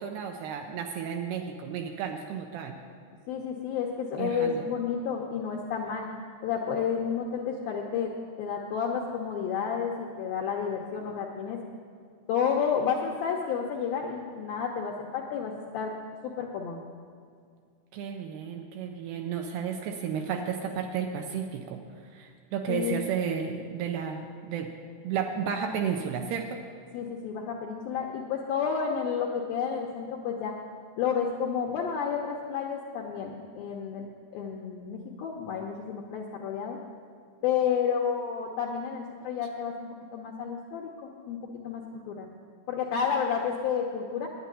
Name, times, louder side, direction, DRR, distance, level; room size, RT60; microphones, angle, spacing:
voice 1, 0.0-2.8 4.2-4.6 17.9-21.8 22.1-24.7 25.0-26.6, right 7 dB, 75° right, 4 dB, 2.5 m, -32 dB
voice 2, 3.3-6.1 6.4-8.1 8.4-11.6 12.3-15.9 16.2-16.8 22.7-23.0 26.9-30.5 31.0-34.1 34.3-36.8 37.4-42.3 42.7-44.3, left 7 dB, 80° left, 0 dB, 2.2 m, -31 dB
10.0 x 9.9 x 9.7 m, 2.2 s
omnidirectional pair, 5.3 m